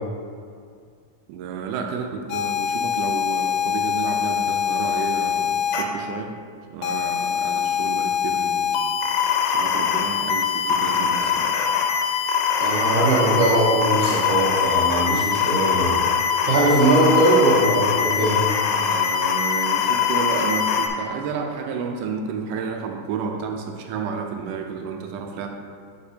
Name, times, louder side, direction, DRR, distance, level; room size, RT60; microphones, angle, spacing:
voice 1, 1.3-6.3 6.7-8.9 9.2-11.6 17.5-17.6 18.7-25.5, right 5 dB, 85° right, 3 dB, 2.1 m, -31 dB
sound 1, 2.3-5.8 6.8-20.9, left 7 dB, 85° left, 2.2 m, -23 dB
voice 2, 12.6-16.0 16.4-18.5, right 2 dB, 65° right, -8 dB, 1.7 m, -20 dB
10.0 x 5.0 x 2.8 m, 2.1 s
omnidirectional pair, 3.6 m